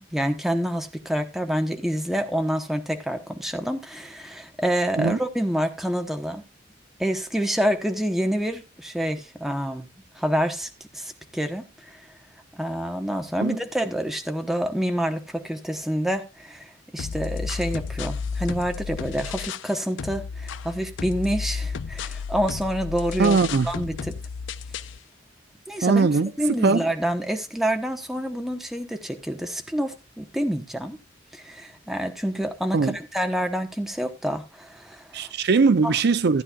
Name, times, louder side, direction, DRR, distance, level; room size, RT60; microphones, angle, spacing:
voice 1, 0.1-6.4 7.0-9.9 10.1-12.0 12.5-23.4 23.7-24.1 25.7-26.1 26.4-31.0 31.3-35.3, equal, ahead, 1.0 m, -27 dB
sound 1, 17.0-19.7 20.0-25.0, left 5 dB, 65° left, 0.4 m, -32 dB
voice 2, 23.2-23.7 25.8-26.9 32.7-33.0 35.1-36.4, right 4 dB, 60° right, 0.5 m, -20 dB
15.0 x 9.8 x 2.3 m
head